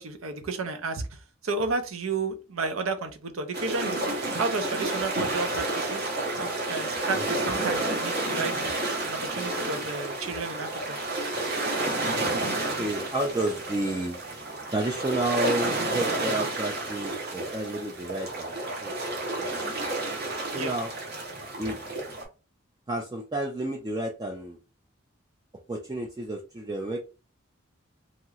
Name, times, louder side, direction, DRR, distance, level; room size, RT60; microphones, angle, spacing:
voice 1, 0.0-4.0 4.4-6.1 6.3-8.5 9.1-11.0 20.5-20.7, right 3 dB, 90° right, 8 dB, 0.6 m, -32 dB
sound 1, 3.5-22.2, right 2 dB, 50° right, 0.9 m, -30 dB
voice 2, 12.5-14.2 14.7-18.5 18.8-19.9 20.5-20.9 21.6-21.8 22.9-24.6 25.7-27.0, right 1 dB, 20° right, 2 dB, 0.3 m, -31 dB
3.0 x 2.8 x 2.4 m, 0.32 s
head